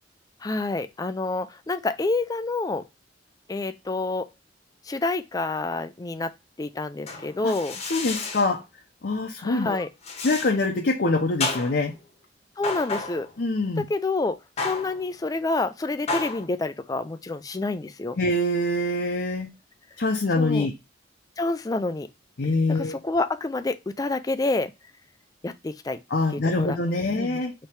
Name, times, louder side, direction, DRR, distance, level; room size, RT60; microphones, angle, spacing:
voice 1, 0.4-2.8 3.5-4.3 4.9-6.3 6.6-7.8 9.4-9.9 12.6-13.3 13.9-18.2 20.4-20.7 21.4-22.1 22.7-24.7 25.4-26.0 26.3-26.8 27.1-27.4, left 2 dB, 20° left, 0.3 m, -28 dB
sound 1, 7.1-8.6 10.0-10.6 11.4-12.0 12.6-13.4 14.6-15.1 16.1-16.5, left 3 dB, 35° left, 0.9 m, -31 dB
voice 2, 7.9-8.6 9.0-9.8 10.2-11.9 13.4-13.8 18.2-19.5 20.0-20.7 22.4-23.0 26.1-27.5, left 2 dB, 60° left, 0.6 m, -24 dB
4.5 x 2.9 x 3.2 m
head